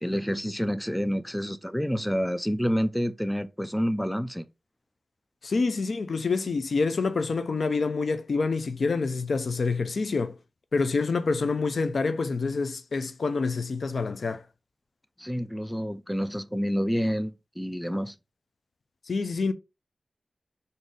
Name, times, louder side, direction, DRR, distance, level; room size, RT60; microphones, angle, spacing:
voice 1, 0.0-4.4 15.2-18.1, equal, ahead, 0.4 m, -28 dB
voice 2, 5.4-10.4 10.7-14.4 19.1-19.5, left 4 dB, 85° left, 0.4 m, -27 dB
4.0 x 2.6 x 3.6 m
wide cardioid pair, 65°, 0 cm